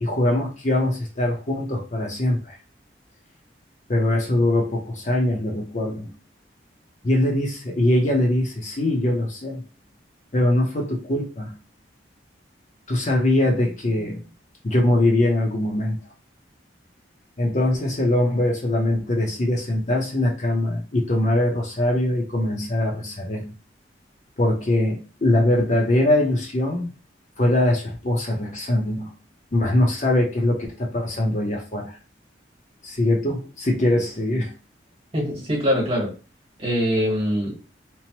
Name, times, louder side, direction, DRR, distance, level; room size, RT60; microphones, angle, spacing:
voice 1, 0.0-2.5 3.9-6.1 7.0-9.6 10.3-11.5 12.9-14.2 14.6-16.0 17.4-23.4 24.4-26.9 27.4-29.1 29.5-32.0 32.8-34.5, left 1 dB, 40° left, 0 dB, 0.6 m, -22 dB
voice 2, 35.1-36.1 36.6-37.7, equal, 35° right, -2 dB, 1.2 m, -23 dB
3.0 x 2.0 x 2.9 m, 0.33 s
head